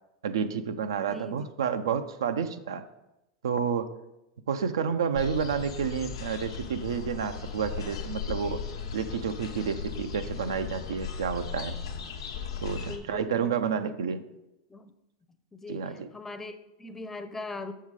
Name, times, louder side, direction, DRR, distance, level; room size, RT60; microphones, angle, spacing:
voice 1, 0.2-2.9 3.4-3.9 4.5-8.6 8.9-11.8 12.6-14.2 15.7-16.1, right 7 dB, 85° right, 9 dB, 0.5 m, -30 dB
sound 1, 5.2-13.0, left 7 dB, 85° left, 1.0 m, -37 dB
voice 2, 12.8-14.1 14.7-14.9 15.5-17.7, left 3 dB, 15° left, 9 dB, 0.6 m, -41 dB
6.4 x 5.6 x 4.8 m, 0.94 s
hypercardioid pair, 105°, 2 cm